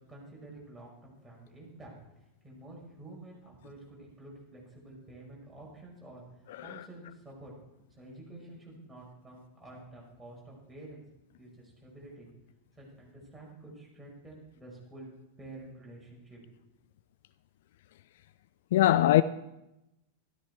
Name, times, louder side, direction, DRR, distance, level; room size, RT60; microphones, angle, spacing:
voice 1, 0.1-1.9 2.4-6.2 6.6-7.5 8.0-11.0 11.4-12.3 12.7-15.1 15.4-16.4, right 2 dB, 5° right, 5.8 m, -49 dB
voice 2, 6.5-6.9 18.7-19.2, left 14 dB, 55° left, 0.3 m, -23 dB
13.5 x 12.5 x 4.6 m
figure-of-eight pair, 90°, 0 cm